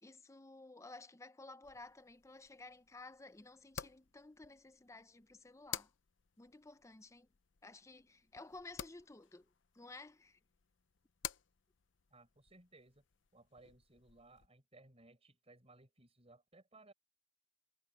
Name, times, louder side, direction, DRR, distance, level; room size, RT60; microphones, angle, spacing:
voice 1, 0.0-5.9 6.4-7.3 7.6-9.5 9.7-10.4, left 2 dB, 15° left, 0.6 m, -54 dB
sound 1, 1.6-14.5, left 10 dB, 80° left, 0.7 m, -53 dB
voice 2, 12.1-13.0 13.3-16.9, right 2 dB, 35° right, 6.2 m, -62 dB
head